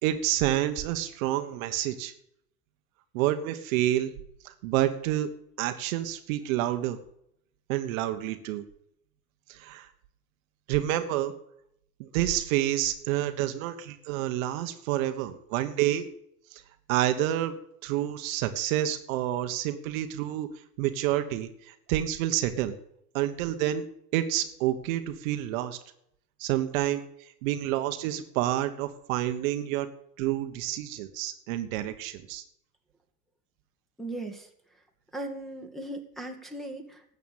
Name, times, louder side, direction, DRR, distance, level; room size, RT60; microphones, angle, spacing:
voice 1, 0.0-2.1 3.1-4.1 4.4-5.3 5.6-7.0 7.7-8.6 9.5-9.9 10.7-11.3 12.0-16.1 16.5-16.6 16.9-17.5 17.8-20.5 20.8-22.8 23.1-23.8 24.1-25.8 26.4-27.0 27.4-29.9 30.2-32.4, right 13 dB, 60° right, 9 dB, 1.4 m, -28 dB
voice 2, 34.0-34.5 35.1-37.2, right 2 dB, ahead, 1 dB, 2.3 m, -38 dB
12.5 x 8.3 x 7.3 m, 0.74 s
hypercardioid pair, 95°, 46 cm